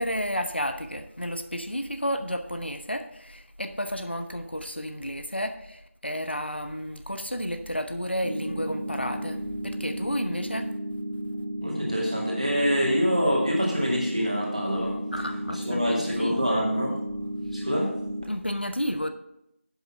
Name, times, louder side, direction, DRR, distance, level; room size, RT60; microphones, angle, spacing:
voice 1, 0.0-9.4 9.6-10.7 15.1-16.5 18.3-19.1, equal, 50° left, 7 dB, 0.8 m, -31 dB
sound 1, 8.2-18.2, equal, 80° right, 1.3 m, -33 dB
voice 2, 11.6-15.0 15.5-17.0 17.5-18.0, equal, 30° right, -3 dB, 2.3 m, -26 dB
7.9 x 6.8 x 5.8 m, 0.78 s
figure-of-eight pair, 175°, 7 cm